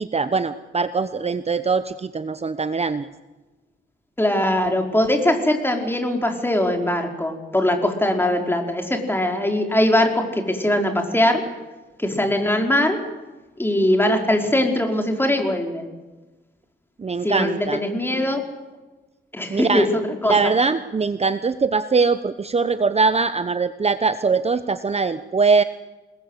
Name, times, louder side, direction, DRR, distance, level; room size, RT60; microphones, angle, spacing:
voice 1, 0.0-3.1 17.0-17.8 19.5-19.9 20.2-25.6, right 4 dB, 30° right, 11 dB, 1.0 m, -22 dB
voice 2, 4.2-11.4 12.0-13.0 13.6-15.9 17.2-18.4 19.3-20.3, left 1 dB, 10° left, 3 dB, 4.9 m, -21 dB
27.5 x 20.5 x 8.2 m, 1.2 s
cardioid pair, 90°, 20 cm